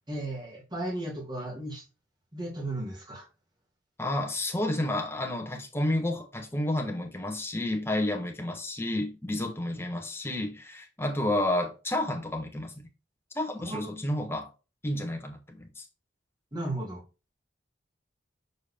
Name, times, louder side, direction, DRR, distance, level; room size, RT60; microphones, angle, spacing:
voice 1, 0.1-1.8 2.3-3.3 13.6-14.0 16.5-17.0, right 1 dB, 25° right, 2.2 m, -35 dB
voice 2, 4.0-12.9 13.3-14.5 14.8-15.8, left 1 dB, 15° left, 1.3 m, -30 dB
6.9 x 4.1 x 3.3 m
head